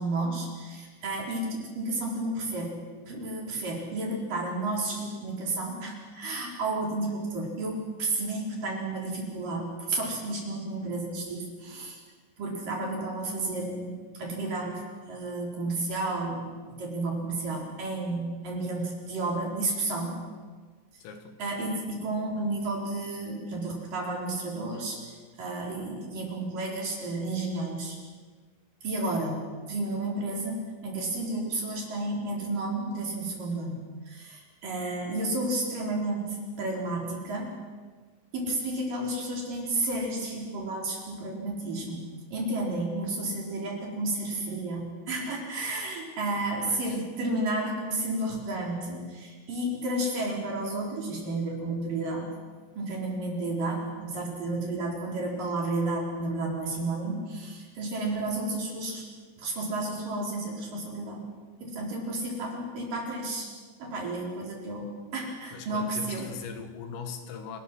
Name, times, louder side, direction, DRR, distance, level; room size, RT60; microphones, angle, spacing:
voice 1, 0.0-12.0 12.4-20.2 21.4-28.0 28.8-37.5 38.3-52.3 52.8-59.0 59.4-61.3 61.6-63.5 63.8-66.3, right 2 dB, 45° right, -1 dB, 5.4 m, -32 dB
voice 2, 21.0-21.4 46.6-47.0 65.5-67.6, left 5 dB, 80° left, 6 dB, 4.5 m, -40 dB
29.0 x 20.0 x 6.3 m, 1.5 s
omnidirectional pair, 5.9 m